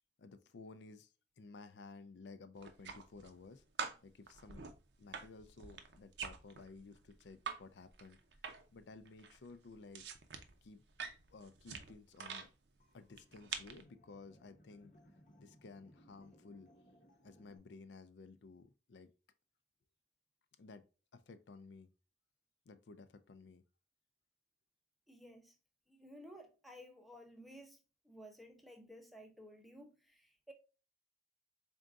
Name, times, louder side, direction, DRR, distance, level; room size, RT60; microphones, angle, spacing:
voice 1, 0.2-3.6 4.0-8.2 8.7-10.0 10.6-10.8 11.3-12.5 12.9-14.9 15.4-16.7 17.2-19.1 20.6-20.8 21.1-21.9 22.7-23.6, left 3 dB, 75° left, 0.4 m, -55 dB
sound 1, 2.6-3.5 3.8-7.6 7.9-8.8 9.1-12.5 13.1-13.8, right 6 dB, 70° right, 0.6 m, -46 dB
sound 2, 12.8-17.6, equal, 45° left, 0.8 m, -65 dB
voice 2, 25.1-25.5 25.9-30.5, equal, ahead, 0.6 m, -55 dB
3.9 x 3.5 x 2.4 m
head